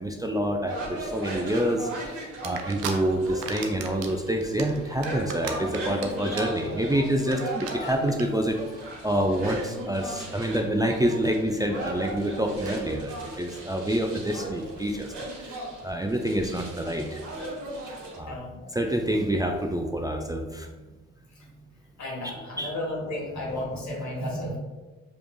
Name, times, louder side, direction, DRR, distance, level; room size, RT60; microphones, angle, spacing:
voice 1, 0.0-17.2 17.9-18.4 18.7-20.7 22.6-22.7 24.2-24.6, right 1 dB, 10° right, 1 dB, 0.4 m, -27 dB
sound 1, 0.7-18.2, right 1 dB, 55° right, 1.2 m, -37 dB
sound 2, 2.4-2.9 3.3-4.1 4.4-6.0 6.3-6.6 6.9-7.0 7.2-7.3 7.6-7.7 8.1-8.2, right 8 dB, 80° right, 0.5 m, -35 dB
voice 2, 18.3-18.7 21.3-21.5 22.0-24.6, left 1 dB, 55° left, -3 dB, 1.2 m, -34 dB
5.0 x 3.1 x 2.3 m, 1.2 s
hypercardioid pair, 50°, 35 cm